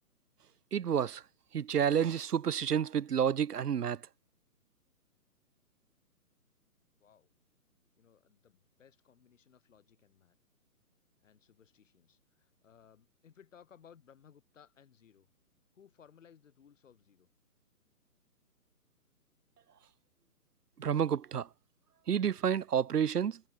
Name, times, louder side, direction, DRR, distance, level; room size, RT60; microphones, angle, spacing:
voice 1, 0.7-1.2 1.5-4.0 20.8-21.5 22.1-23.4, right 8 dB, 75° right, 1.0 m, -30 dB
voice 2, 7.0-7.3 8.0-10.4 11.2-15.3 15.7-17.3, left 8 dB, 50° left, 7.0 m, -61 dB
hypercardioid pair, 155°, 47 cm